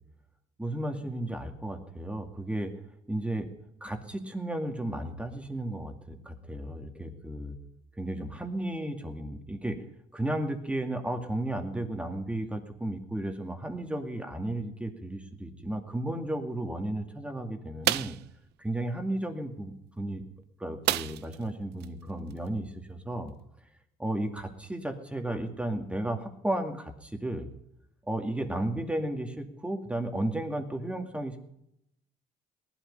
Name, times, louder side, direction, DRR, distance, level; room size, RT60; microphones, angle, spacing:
voice 1, 0.6-2.7 3.1-3.5 3.8-7.6 8.0-9.8 10.1-18.1 18.6-20.2 20.6-23.3 24.0-27.5 28.1-31.4, right 1 dB, 5° right, 4 dB, 2.2 m, -34 dB
sound 1, 17.8-18.3 20.9-21.4 21.8-21.9 22.3-22.5, right 16 dB, 80° right, 0.5 m, -28 dB
19.0 x 12.0 x 5.5 m, 0.78 s
cardioid pair, 110°, 17 cm